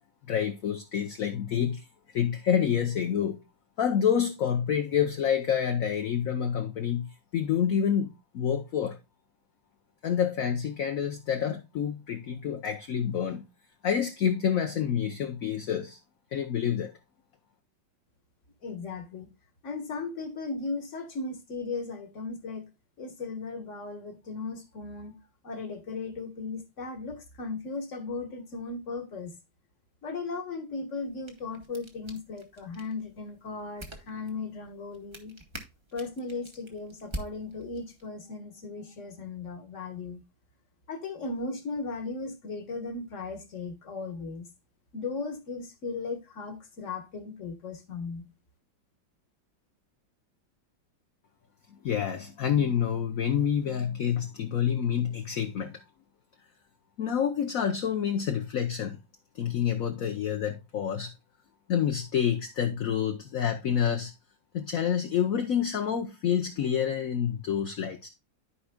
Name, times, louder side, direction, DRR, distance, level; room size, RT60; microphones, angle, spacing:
voice 1, 0.3-1.8 2.1-3.4 3.8-9.0 10.0-13.4 13.8-16.0 16.3-16.9 51.8-55.8 57.0-59.0 59.3-61.1 61.7-64.1 64.5-68.1, left 8 dB, 60° left, 1.0 m, -28 dB
voice 2, 18.6-19.3 19.6-22.6 23.0-25.1 25.4-29.3 30.0-35.3 35.9-40.2 40.9-44.5 44.9-48.2, left 3 dB, 45° left, 1.5 m, -37 dB
sound 1, 31.0-38.1, right 1 dB, 20° right, 0.8 m, -46 dB
14.0 x 4.7 x 2.2 m
omnidirectional pair, 2.0 m